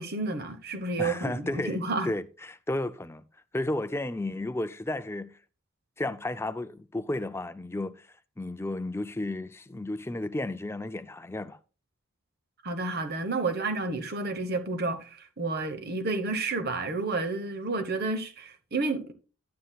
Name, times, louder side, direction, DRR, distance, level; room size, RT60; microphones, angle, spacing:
voice 1, 0.0-2.1 12.6-19.1, right 3 dB, 45° right, 1.0 m, -30 dB
voice 2, 1.0-1.8 2.0-3.2 3.5-5.4 6.0-8.1 8.4-11.6, left 1 dB, 10° left, 0.4 m, -33 dB
11.5 x 9.4 x 2.3 m
head